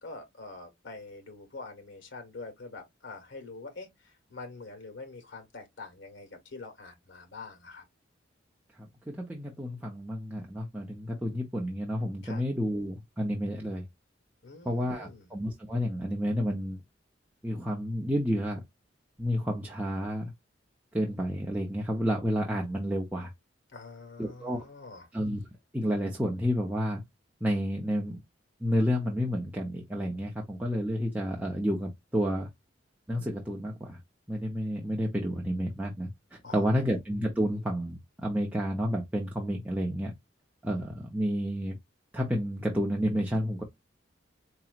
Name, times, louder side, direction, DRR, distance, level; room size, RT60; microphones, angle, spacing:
voice 1, 0.0-7.8 12.2-12.4 14.4-15.3 23.7-25.1 36.4-36.7, left 3 dB, 75° left, 1.4 m, -45 dB
voice 2, 9.1-13.9 14.6-16.8 17.4-18.6 19.2-20.3 20.9-23.3 24.2-24.6 25.1-25.4 25.7-27.0 27.4-28.2 28.6-32.5 33.1-34.0 34.3-40.1 40.6-41.8 42.1-43.6, equal, 10° right, 0.7 m, -30 dB
4.6 x 2.9 x 2.4 m
head